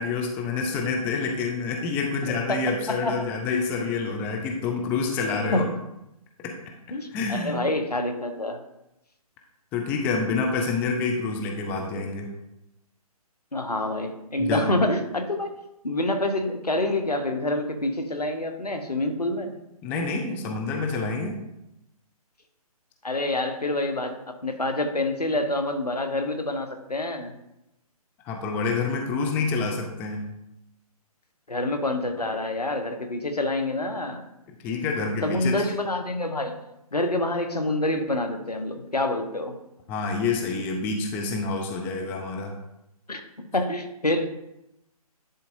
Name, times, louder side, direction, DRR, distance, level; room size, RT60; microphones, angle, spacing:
voice 1, 0.0-5.6 6.4-6.6 7.1-7.7 9.7-12.3 14.4-14.7 19.8-21.4 28.3-30.3 34.6-35.6 39.9-42.5, left 4 dB, 10° left, 2 dB, 0.4 m, -27 dB
voice 2, 2.2-3.1 5.5-5.6 6.9-8.6 13.5-15.5 15.8-19.5 23.0-27.3 31.5-34.2 35.2-36.5 36.9-39.6 43.1-43.2 43.5-44.3, left 2 dB, 90° left, 6 dB, 1.1 m, -27 dB
10.5 x 4.1 x 2.7 m, 0.87 s
figure-of-eight pair, 140°, 20 cm